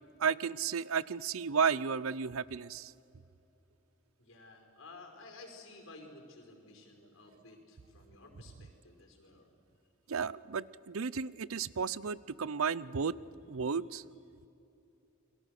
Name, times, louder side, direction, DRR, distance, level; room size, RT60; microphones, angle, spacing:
voice 1, 0.2-2.9 10.1-13.1 13.5-14.0, right 6 dB, 85° right, 20 dB, 0.6 m, -33 dB
voice 2, 4.2-9.5, left 2 dB, 75° left, 3 dB, 5.2 m, -54 dB
30.0 x 22.5 x 6.6 m, 2.8 s
head